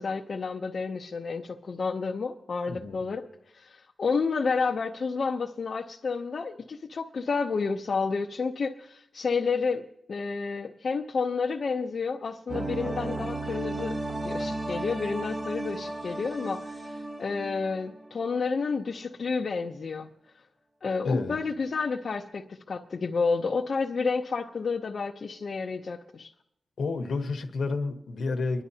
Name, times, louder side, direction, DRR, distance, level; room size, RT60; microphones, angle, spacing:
voice 1, 0.0-3.2 3.5-14.0 14.2-20.1 20.8-26.3, left 4 dB, 60° left, 1 dB, 0.6 m, -30 dB
voice 2, 2.7-3.1 21.0-21.4 26.8-28.6, left 3 dB, 80° left, 6 dB, 1.1 m, -30 dB
sound 1, 12.5-18.1 18.4-18.5, right 2 dB, 35° right, 0.9 m, -34 dB
27.5 x 11.0 x 2.8 m, 0.80 s
wide cardioid pair, 90°, 0 cm